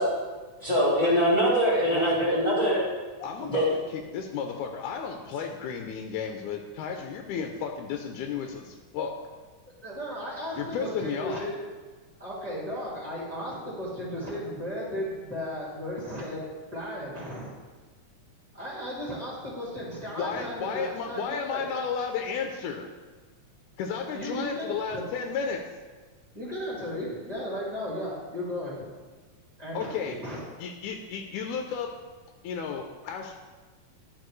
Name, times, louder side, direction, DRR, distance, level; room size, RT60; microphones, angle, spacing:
voice 1, 0.6-2.8 3.4-3.7, equal, 20° left, -9 dB, 1.1 m, -23 dB
voice 2, 3.2-9.1 10.6-11.5 20.2-22.9 23.8-25.6 29.7-30.2 30.6-31.9 32.4-33.4, left 6 dB, 80° left, 3 dB, 2.0 m, -33 dB
voice 3, 9.8-11.6 12.2-16.4 16.7-17.5 18.5-21.6 24.1-25.0 26.3-28.8 29.6-30.4, equal, 15° right, -7 dB, 1.7 m, -35 dB
11.5 x 4.6 x 3.1 m, 1.4 s
omnidirectional pair, 3.6 m